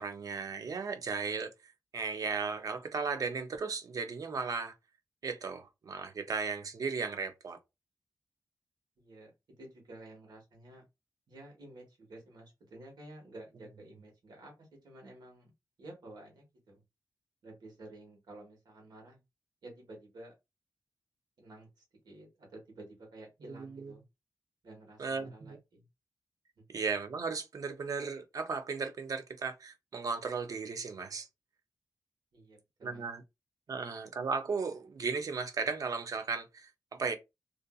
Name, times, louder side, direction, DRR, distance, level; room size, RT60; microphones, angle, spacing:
voice 1, 0.0-4.8 5.2-7.6 23.4-23.9 25.0-25.6 26.7-31.3 32.8-33.2 33.7-37.1, right 5 dB, 55° right, 0.5 m, -36 dB
voice 2, 9.0-9.3 9.6-10.8 11.3-15.5 15.8-16.8 17.4-19.2 19.6-20.3 21.4-24.0 24.6-25.9 26.6-26.7 32.3-33.1 33.7-33.8, right 1 dB, 80° right, 1.2 m, -52 dB
2.5 x 2.5 x 2.3 m
wide cardioid pair, 140°, 7 cm